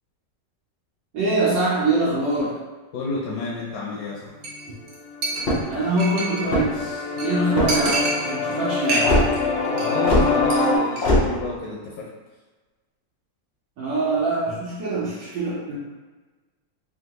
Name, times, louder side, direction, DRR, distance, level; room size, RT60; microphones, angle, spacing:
voice 1, 1.1-2.6 5.7-9.1 13.8-15.8, right 2 dB, 85° right, -9 dB, 1.3 m, -24 dB
voice 2, 2.9-4.3 9.7-12.1, left 3 dB, 70° left, -4 dB, 1.0 m, -30 dB
Chink clink, 4.4-4.6 4.9-5.0 5.2-6.6 6.9-7.0 7.2-7.3 7.7-8.6 8.9-9.4 9.6-9.9 10.2-10.5 10.9-11.0, right 2 dB, 65° right, 1.1 m, -27 dB
sound 1, 4.5-4.7 5.0-10.8, left 3 dB, 90° left, 1.3 m, -26 dB
sound 2, 5.4-5.8 6.4-6.9 7.5-7.9 9.0-9.3 10.0-10.3 11.0-11.2, left 1 dB, 50° left, 0.7 m, -20 dB
3.5 x 2.2 x 2.8 m, 1.3 s
omnidirectional pair, 1.9 m